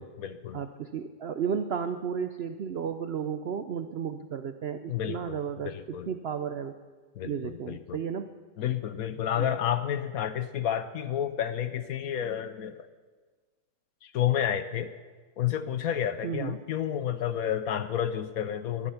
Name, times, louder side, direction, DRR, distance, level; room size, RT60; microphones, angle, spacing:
voice 1, 0.0-0.6 4.9-5.4 5.6-6.1 7.2-8.0 8.6-12.9 14.0-14.9 15.4-18.9, left 10 dB, 65° left, 12 dB, 1.1 m, -30 dB
voice 2, 0.5-6.7 7.2-8.3 9.3-9.6 16.2-16.6, right 7 dB, 70° right, 9 dB, 0.6 m, -33 dB
21.0 x 11.5 x 5.8 m, 1.5 s
omnidirectional pair, 1.8 m